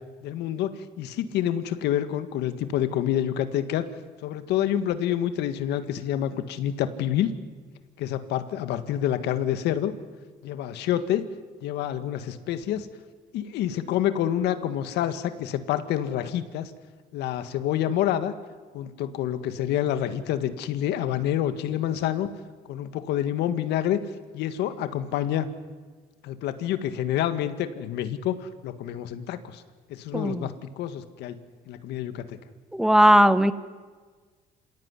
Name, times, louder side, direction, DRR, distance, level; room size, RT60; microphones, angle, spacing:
voice 1, 0.2-3.9 4.2-7.3 8.0-9.9 10.4-11.3 11.6-12.9 13.3-16.7 17.1-18.3 18.7-22.3 22.7-24.0 24.3-25.5 26.2-29.6 29.9-31.4 31.7-32.4, left 11 dB, 85° left, 10 dB, 1.8 m, -27 dB
voice 2, 30.1-30.5 32.7-33.5, equal, 5° right, 13 dB, 1.2 m, -18 dB
27.0 x 17.0 x 9.8 m, 1.4 s
cardioid pair, 110°, 17 cm